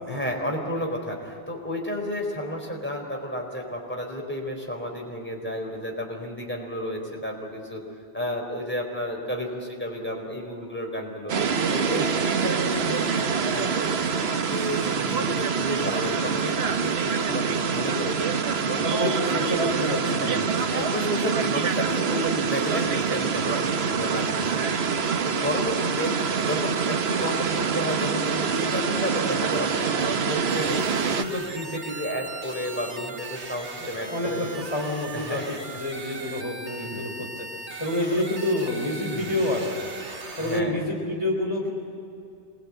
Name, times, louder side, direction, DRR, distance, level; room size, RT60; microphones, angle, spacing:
voice 1, 0.1-7.8 8.1-11.3 11.7-13.2 13.5-14.2 14.5-18.3 18.7-19.1 20.2-24.7 25.2-34.5 35.1-35.4 36.3-36.4 36.8-37.0 39.1-39.3 40.4-40.8, equal, 10° left, 1 dB, 4.3 m, -32 dB
sound 1, 11.3-31.2, right 5 dB, 65° right, 1.2 m, -25 dB
voice 2, 18.8-20.5 33.8-37.5 37.8-39.9 40.4-41.7, left 1 dB, 25° left, -2 dB, 3.5 m, -28 dB
sound 2, 30.5-40.6, right 3 dB, 80° right, 2.0 m, -39 dB
26.5 x 21.0 x 8.7 m, 2.5 s
omnidirectional pair, 1.2 m